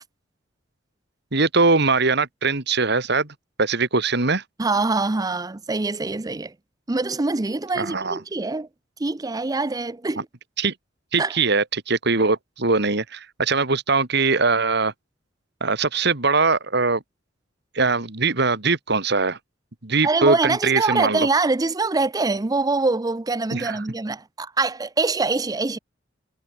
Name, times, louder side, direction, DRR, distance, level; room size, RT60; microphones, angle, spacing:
voice 1, 1.3-3.3 3.6-4.4 7.8-8.2 10.6-10.7 11.1-14.9 15.6-17.0 17.7-19.4 19.8-21.3 23.5-23.8, right 4 dB, 60° right, 2.4 m, -21 dB
voice 2, 4.6-6.5 6.9-8.7 9.0-10.3 11.2-11.3 20.0-25.8, right 3 dB, 20° right, 0.5 m, -24 dB
head